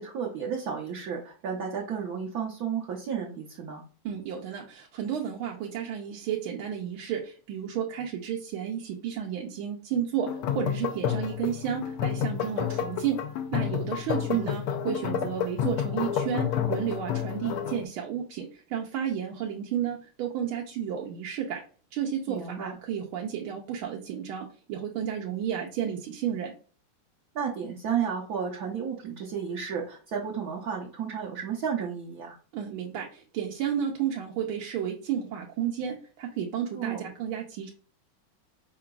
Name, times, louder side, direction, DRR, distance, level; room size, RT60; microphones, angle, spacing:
voice 1, 0.0-3.8 14.3-14.6 22.3-22.7 27.3-32.4 36.7-37.1, right 7 dB, 65° right, -2 dB, 1.0 m, -32 dB
voice 2, 4.0-10.3 10.5-13.2 13.5-21.6 21.9-26.5 32.5-37.7, right 9 dB, 80° right, 0 dB, 1.5 m, -32 dB
sound 1, 10.3-17.8, left 9 dB, 85° left, 1.5 m, -30 dB
4.8 x 3.8 x 2.3 m, 0.38 s
omnidirectional pair, 2.3 m